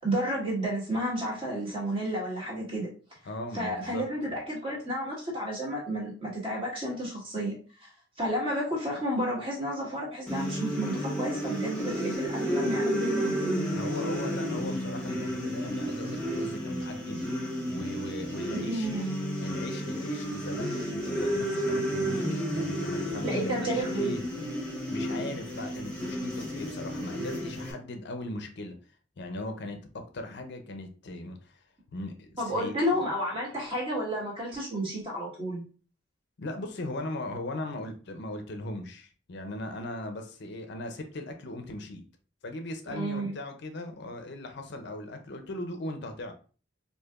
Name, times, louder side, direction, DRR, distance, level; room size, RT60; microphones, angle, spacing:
voice 1, 0.0-2.9 3.5-7.5 7.8-7.9 8.2-13.6 18.5-19.1 23.2-24.2 32.4-35.6 42.9-43.3, equal, 30° right, -4 dB, 1.5 m, -31 dB
voice 2, 3.2-4.0 13.7-17.2 17.7-18.9 19.4-24.2 24.9-28.7 29.2-31.6 31.9-32.7 36.4-42.0 42.4-46.3, left 2 dB, 60° left, 6 dB, 0.6 m, -38 dB
sound 1, 10.3-27.7, equal, 5° left, 1.1 m, -32 dB
4.5 x 2.8 x 2.4 m, 0.38 s
head